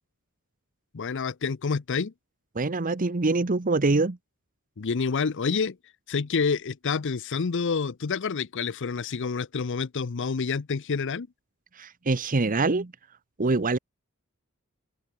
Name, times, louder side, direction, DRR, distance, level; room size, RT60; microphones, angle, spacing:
voice 1, 0.9-2.1 4.8-5.8 6.1-11.3, left 5 dB, 60° left, 0.6 m, -28 dB
voice 2, 2.5-4.2 11.8-12.9 13.4-13.8, right 3 dB, 40° right, 0.8 m, -24 dB
head